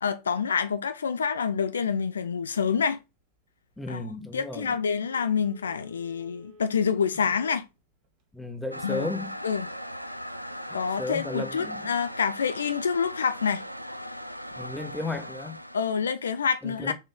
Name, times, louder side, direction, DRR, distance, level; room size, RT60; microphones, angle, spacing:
voice 1, 0.0-3.0 3.9-4.0 4.3-7.7 8.8-9.1 9.4-9.7 10.7-13.6 15.7-16.9, left 6 dB, 70° left, 0.4 m, -27 dB
voice 2, 3.8-4.8 8.3-9.4 10.7-11.9 14.6-15.6 16.6-16.9, left 2 dB, 5° left, 0.9 m, -34 dB
Telephone, 4.6-7.6 8.0-8.1, left 1 dB, 45° right, 1.9 m, -52 dB
Toilet flush, 8.7-16.2, equal, 90° right, 0.3 m, -39 dB
4.3 x 3.2 x 3.5 m
figure-of-eight pair, 90°, 0 cm